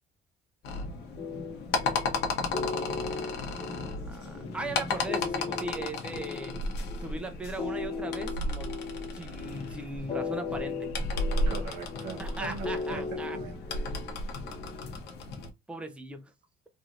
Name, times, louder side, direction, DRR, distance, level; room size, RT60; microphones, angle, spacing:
sound 1, 0.6-15.5, left 2 dB, 75° left, 0.9 m, -34 dB
sound 2, 1.2-14.9, left 4 dB, 35° left, 0.7 m, -38 dB
voice 1, 4.1-6.5 7.0-8.7 9.1-10.9 12.2-13.4 15.7-16.3, right 2 dB, 5° right, 0.6 m, -38 dB
voice 2, 11.3-13.8, right 4 dB, 85° right, 0.9 m, -41 dB
3.2 x 2.7 x 2.4 m
cardioid pair, 110°, 17 cm